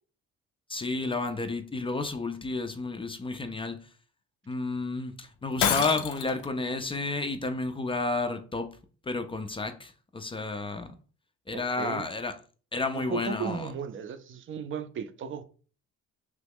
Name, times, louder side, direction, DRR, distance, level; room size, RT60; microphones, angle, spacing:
voice 1, 0.7-3.9 4.5-8.8 9.0-10.9 11.5-12.3 12.7-13.7, left 3 dB, 20° left, 0.3 m, -31 dB
Shatter, 5.6-6.5, left 8 dB, 80° left, 0.5 m, -27 dB
voice 2, 11.5-12.0 12.9-15.4, right 7 dB, 45° right, 0.5 m, -35 dB
3.0 x 2.3 x 3.4 m
cardioid pair, 90°, 30 cm